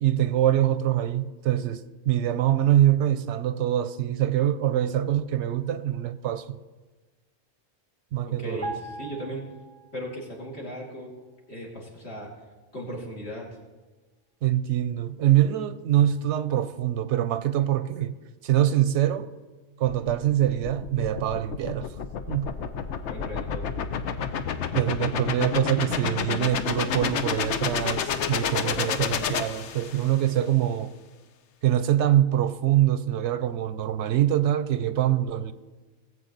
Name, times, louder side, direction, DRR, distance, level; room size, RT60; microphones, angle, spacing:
voice 1, 0.0-6.6 8.1-8.8 14.4-18.1 18.4-19.3 19.8-21.9 22.3-22.5 24.7-30.9 31.6-35.5, right 12 dB, 85° right, 0.9 m, -24 dB
voice 2, 8.2-9.4 9.9-11.1 11.5-12.3 12.7-13.5 23.1-23.7, equal, 70° left, 3.1 m, -37 dB
sound 1, 8.6-10.2 10.5-10.7, right 2 dB, 55° left, 2.5 m, -39 dB
sound 2, 19.9-30.2, left 7 dB, 90° left, 1.0 m, -30 dB
19.0 x 8.0 x 4.0 m
omnidirectional pair, 1.2 m